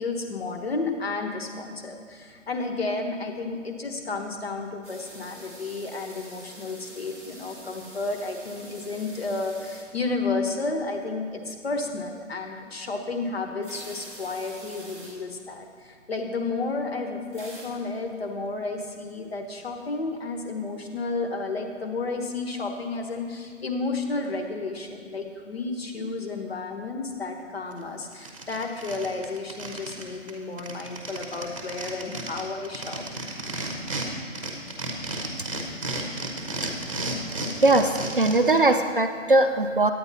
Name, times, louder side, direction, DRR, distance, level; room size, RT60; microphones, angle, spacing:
voice 1, 0.0-33.0, left 3 dB, 50° left, 4 dB, 1.2 m, -32 dB
sound 1, 4.8-10.0 10.4-10.5 13.6-15.2 15.5-15.6 15.8-15.9 17.3-17.7 18.1-18.2, right 1 dB, 10° left, 0.8 m, -46 dB
sound 2, 27.7-27.8 28.1-30.0 30.3-30.4 30.6-34.1 34.4-38.6, right 2 dB, 25° right, 0.9 m, -33 dB
voice 2, 37.6-39.9, right 2 dB, 45° right, 7 dB, 0.5 m, -20 dB
9.9 x 9.0 x 4.0 m, 2.1 s
hypercardioid pair, 175°, 38 cm